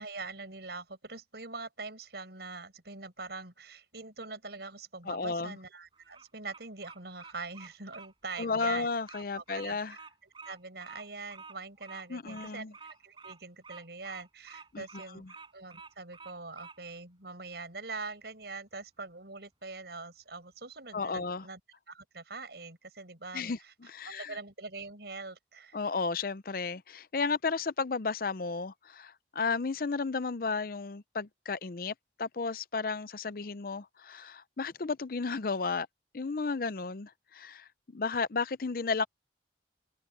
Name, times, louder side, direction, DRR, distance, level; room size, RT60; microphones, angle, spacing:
voice 1, 0.0-8.9 9.3-10.0 10.5-15.2 15.5-21.6 21.9-23.7 24.1-25.8, right 3 dB, 70° right, 5.3 m, -43 dB
voice 2, 5.1-5.6 8.4-10.0 12.1-12.7 14.7-14.8 15.1-15.3 20.9-21.4 23.3-24.4 25.7-35.9 36.1-39.0, left 4 dB, 55° left, 0.6 m, -33 dB
Bird vocalization bird call bird song, 5.9-16.8, right 4 dB, 25° right, 6.8 m, -50 dB
head